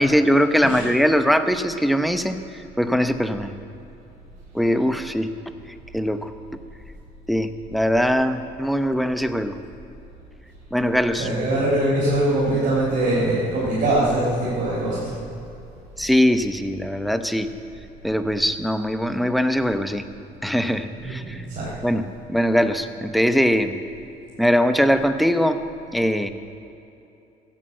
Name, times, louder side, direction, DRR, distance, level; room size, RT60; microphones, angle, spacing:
voice 1, 0.0-2.4 2.8-3.5 4.5-5.3 5.9-6.3 7.3-9.5 10.7-11.3 16.0-17.5 18.0-20.0 20.4-21.4 21.8-23.7 24.4-25.6 25.9-26.3, equal, ahead, 8 dB, 0.8 m, -21 dB
voice 2, 11.2-15.1 21.0-21.7, right 1 dB, 55° right, -7 dB, 4.5 m, -22 dB
15.5 x 9.9 x 7.7 m, 2.8 s
cardioid pair, 110°, 17 cm